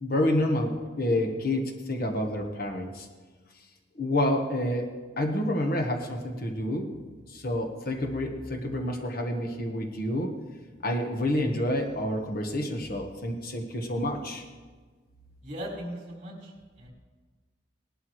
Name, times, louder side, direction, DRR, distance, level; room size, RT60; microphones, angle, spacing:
voice 1, 0.0-3.1 3.9-4.9 5.2-6.9 7.3-10.3 10.8-14.4, left 1 dB, 50° left, 3 dB, 1.3 m, -28 dB
voice 2, 15.4-16.5 16.8-16.9, equal, 35° right, -4 dB, 4.2 m, -38 dB
18.5 x 12.0 x 3.2 m, 1.4 s
head